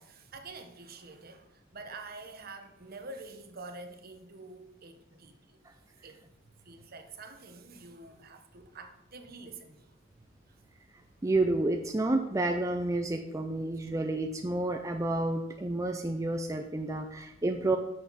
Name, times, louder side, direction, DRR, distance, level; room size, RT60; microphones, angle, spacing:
voice 1, 0.0-5.6 5.9-6.3 6.6-9.9 10.5-10.6 12.7-12.8, right 3 dB, 50° right, 1.0 m, -47 dB
voice 2, 11.2-17.8, right 2 dB, 15° right, 0.5 m, -30 dB
10.5 x 6.6 x 4.1 m
head